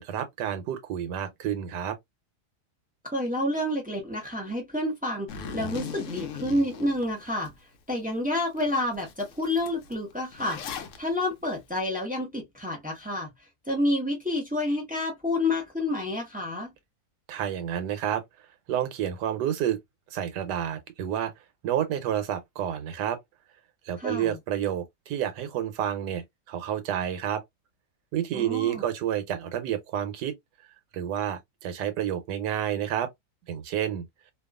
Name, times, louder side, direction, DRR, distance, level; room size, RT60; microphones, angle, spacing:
voice 1, 0.0-2.0 17.3-18.2 18.7-19.8 20.1-21.3 21.6-23.2 23.8-27.4 28.1-30.3 30.9-33.1 33.5-34.1, right 10 dB, 90° right, 1.3 m, -29 dB
voice 2, 3.0-7.5 7.9-10.6 11.0-13.3 13.7-16.7 24.0-24.4 28.3-28.8, left 1 dB, 10° right, 0.3 m, -29 dB
Zipper (clothing), 5.3-7.5 8.0-8.1 8.6-8.7 8.9-11.0, left 6 dB, 65° left, 0.8 m, -38 dB
2.9 x 2.3 x 2.2 m
omnidirectional pair, 1.7 m